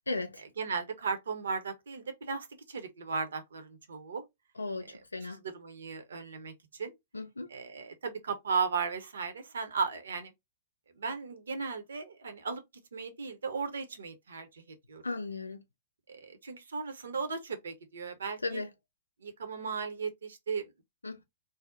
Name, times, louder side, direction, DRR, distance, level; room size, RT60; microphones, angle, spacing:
voice 1, 0.1-0.4 4.6-4.9 5.1-5.4 7.1-7.5 15.0-15.6 18.4-18.7 21.0-21.2, left 3 dB, 85° left, 0.5 m, -35 dB
voice 2, 0.6-4.3 4.8-7.0 7.5-10.3 10.9-12.6 12.9-14.6 14.9-15.0 16.1-18.6 19.2-20.6, right 5 dB, 70° right, 0.7 m, -36 dB
2.7 x 2.1 x 3.6 m
figure-of-eight pair, 105°, 0 cm